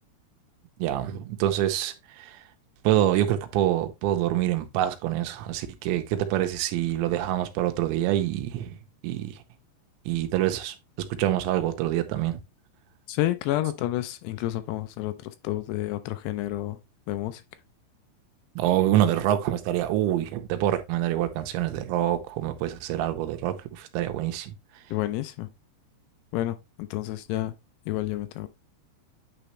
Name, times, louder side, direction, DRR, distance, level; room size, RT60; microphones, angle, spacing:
voice 1, 0.8-2.4 2.8-8.8 9.0-9.3 10.1-10.7 11.2-12.4 18.6-24.5, right 12 dB, 85° right, 3.1 m, -26 dB
voice 2, 13.1-16.8 17.1-17.4 24.9-25.5 26.3-27.5 27.9-28.5, left 15 dB, 80° left, 2.5 m, -30 dB
9.1 x 4.1 x 3.1 m
omnidirectional pair, 5.1 m